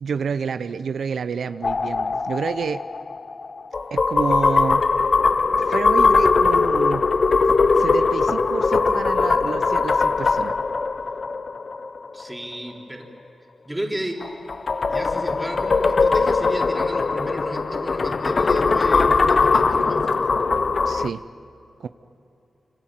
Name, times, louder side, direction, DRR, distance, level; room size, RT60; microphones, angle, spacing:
voice 1, 0.0-2.8 3.9-4.8 5.5-7.0 7.8-10.5 20.8-21.2 21.8-21.9, right 6 dB, 85° right, 12 dB, 0.6 m, -29 dB
sound 1, 1.6-12.2 14.2-21.1, left 4 dB, 50° left, 0.7 m, -20 dB
voice 2, 12.1-13.1 13.7-14.2 14.9-20.3, right 1 dB, 10° right, 1 dB, 3.5 m, -33 dB
27.0 x 26.5 x 7.6 m, 2.8 s
wide cardioid pair, 85°, 0 cm